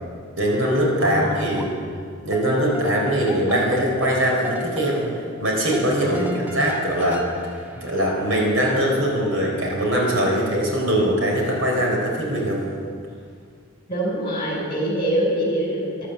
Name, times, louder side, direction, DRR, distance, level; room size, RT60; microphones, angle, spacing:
voice 1, 0.4-1.7 2.2-5.1 5.4-7.2 7.8-12.6, equal, 80° right, -2 dB, 4.3 m, -21 dB
voice 2, 1.0-1.8 6.0-6.6 13.9-16.1, right 1 dB, 25° left, -3 dB, 4.6 m, -25 dB
sound 1, 1.0-2.0 2.3-8.5, equal, 10° right, 1.0 m, -38 dB
13.5 x 11.5 x 7.6 m, 2.2 s
head